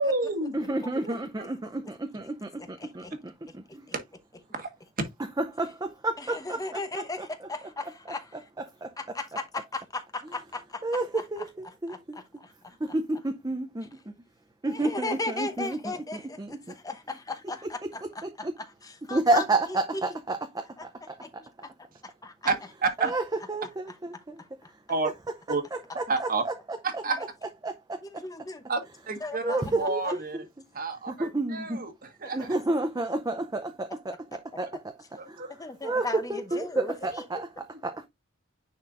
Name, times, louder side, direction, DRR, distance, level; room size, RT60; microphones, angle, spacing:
voice 1, 0.0-0.6 1.1-1.4 4.5-4.7 22.4-22.5 22.8-23.1 24.9-25.1 25.5-25.6 26.1-26.4 26.8-27.2 28.7-28.8 29.1-30.4 30.7-32.5 35.2-35.5, right 3 dB, 45° right, 1.5 m, -29 dB
voice 2, 0.5-3.9 5.4-7.5 8.1-9.2 10.8-12.2 12.8-14.1 14.6-16.8 17.6-18.5 19.1-21.4 23.0-23.2 23.5-24.4 25.7-27.0 27.6-28.2 29.4-30.4 31.1-31.8 32.3-35.0 35.3-35.5 35.8-38.1, right 2 dB, 20° right, 0.6 m, -31 dB
voice 3, 2.8-3.1 6.2-8.3 9.0-10.8 11.9-12.7 14.7-18.5 18.8-19.4 21.2-21.3 22.2-22.5 28.1-28.6 29.2-30.1 35.6-36.9, left 2 dB, 20° left, 0.8 m, -36 dB
9.7 x 4.3 x 2.5 m
head